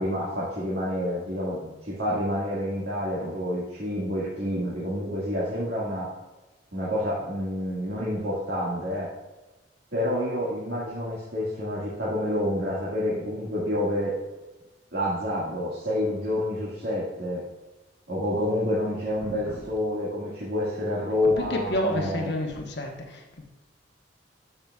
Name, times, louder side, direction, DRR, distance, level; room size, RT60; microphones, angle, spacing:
voice 1, 0.0-6.1 6.7-9.1 9.9-14.1 14.9-17.4 18.1-22.3, left 1 dB, 65° right, -8 dB, 1.8 m, -28 dB
voice 2, 19.2-19.6 21.2-23.4, left 1 dB, 65° left, 1 dB, 1.1 m, -30 dB
12.0 x 5.9 x 2.4 m, 1.1 s
head